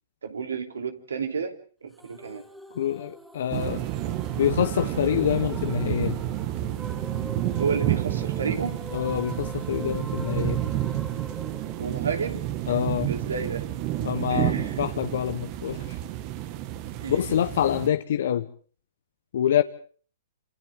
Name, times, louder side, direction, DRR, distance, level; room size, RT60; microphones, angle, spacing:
voice 1, 0.2-1.5 1.8-2.4 7.6-8.8 11.8-12.4 13.0-13.6 14.3-14.7 17.0-17.2, right 5 dB, 85° right, 6 dB, 3.1 m, -31 dB
sound 1, 2.0-12.9, equal, 5° right, 2.3 m, -44 dB
voice 2, 2.7-3.8 4.4-6.2 8.9-10.6 12.7-13.1 14.0-16.0 17.1-18.5 19.3-19.6, left 10 dB, 65° left, 9 dB, 0.9 m, -26 dB
sound 2, 3.5-17.9, right 13 dB, 40° right, 1.5 m, -30 dB
28.0 x 27.5 x 3.6 m, 0.43 s
hypercardioid pair, 130°, 0 cm